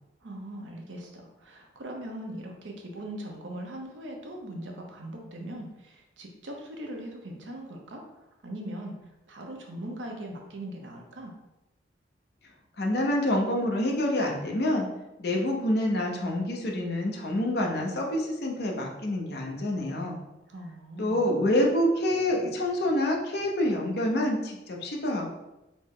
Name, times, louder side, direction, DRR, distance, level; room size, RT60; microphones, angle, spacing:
voice 1, 0.2-8.9 9.3-11.3 20.5-21.4, right 1 dB, 90° right, 1 dB, 0.7 m, -40 dB
voice 2, 12.8-14.9 15.2-20.2 21.0-25.3, left 1 dB, 60° left, 0 dB, 0.7 m, -27 dB
3.9 x 2.0 x 3.7 m, 0.97 s
head